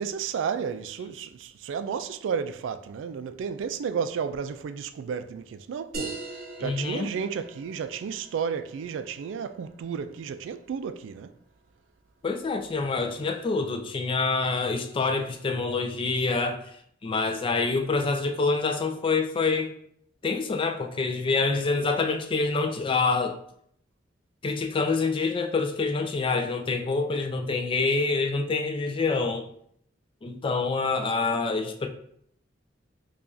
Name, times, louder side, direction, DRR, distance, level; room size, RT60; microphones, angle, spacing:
voice 1, 0.0-6.2 6.6-11.3, right 6 dB, 85° right, 0.3 m, -32 dB
sound 1, 5.9-11.0, right 2 dB, 55° right, 0.7 m, -42 dB
voice 2, 6.6-7.1 12.2-16.7 17.0-19.7 20.2-23.4 24.4-29.5 30.2-31.9, left 4 dB, 30° left, 0.3 m, -26 dB
4.7 x 2.4 x 2.6 m
head